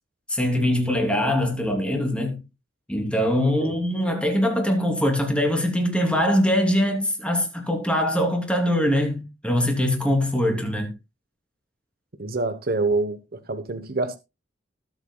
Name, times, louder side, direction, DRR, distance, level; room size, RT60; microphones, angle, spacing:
voice 1, 0.3-2.4 2.9-10.9, left 1 dB, 5° left, 3.2 m, -22 dB
voice 2, 12.2-13.2 13.5-14.2, right 3 dB, 55° right, 1.1 m, -25 dB
20.0 x 8.1 x 2.3 m
head